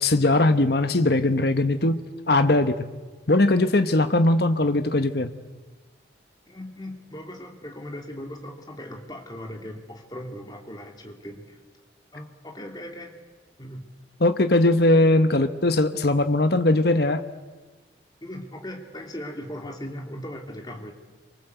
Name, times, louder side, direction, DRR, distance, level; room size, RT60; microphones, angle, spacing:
voice 1, 0.0-2.0 2.3-2.7 3.3-5.3 14.2-17.2, left 2 dB, 55° left, 9 dB, 1.1 m, -20 dB
voice 2, 6.5-11.6 12.1-13.1 13.6-13.9 15.3-15.5 18.2-20.9, left 1 dB, 20° left, 3 dB, 2.6 m, -38 dB
27.5 x 24.5 x 8.1 m, 1.3 s
head